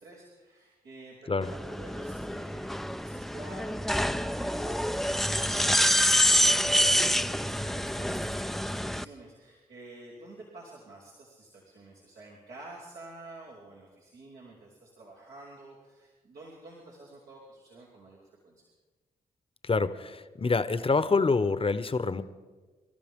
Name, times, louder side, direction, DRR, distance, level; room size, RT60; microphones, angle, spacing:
voice 1, 0.0-4.9 5.1-18.7, right 2 dB, 90° right, -5 dB, 3.2 m, -49 dB
sound 1, 1.4-9.0, equal, ahead, 0.5 m, -27 dB
voice 2, 19.6-22.2, left 4 dB, 35° left, 13 dB, 0.9 m, -26 dB
27.5 x 13.0 x 3.7 m, 1.3 s
supercardioid pair, 45°, 16 cm